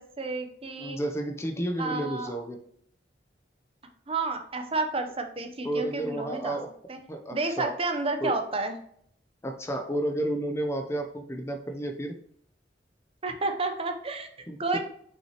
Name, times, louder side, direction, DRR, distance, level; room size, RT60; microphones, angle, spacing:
voice 1, 0.0-1.0 1.8-2.3 4.1-6.6 6.9-7.0 7.3-8.8 13.2-14.3 14.6-14.8, right 3 dB, 30° right, 5 dB, 0.7 m, -30 dB
voice 2, 0.8-2.6 5.6-6.7 7.1-7.7 8.2-8.4 9.4-12.2 14.5-14.8, right 1 dB, 15° left, 5 dB, 0.5 m, -31 dB
5.9 x 5.8 x 2.9 m, 0.64 s
head